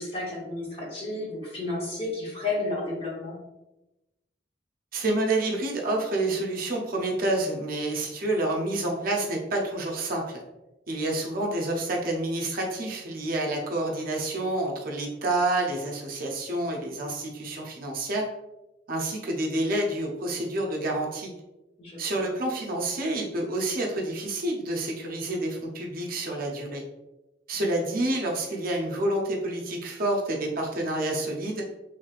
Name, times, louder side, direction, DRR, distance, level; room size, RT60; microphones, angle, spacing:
voice 1, 0.0-3.4 21.8-22.4 27.5-27.7, left 2 dB, 30° left, -4 dB, 1.0 m, -32 dB
voice 2, 4.9-10.4 10.9-18.2 18.9-21.3 22.0-26.8 27.5-31.6, right 2 dB, 50° right, -1 dB, 0.6 m, -28 dB
3.1 x 3.1 x 2.4 m, 0.98 s
head